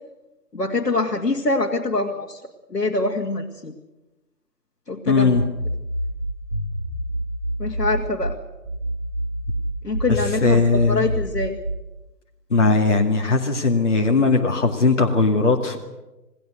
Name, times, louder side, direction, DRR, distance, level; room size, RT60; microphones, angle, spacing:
voice 1, 0.5-2.4 2.7-3.7 4.9-5.4 7.6-8.3 9.8-11.6, left 2 dB, 75° left, 0 dB, 2.4 m, -24 dB
voice 2, 5.1-5.4 10.4-11.1 12.5-15.8, left 3 dB, 45° left, 1 dB, 2.3 m, -18 dB
sound 1, 5.2-8.2 8.6-11.7, equal, ahead, 6.6 m, -28 dB
27.5 x 20.0 x 6.5 m, 1.0 s
figure-of-eight pair, 165°, 48 cm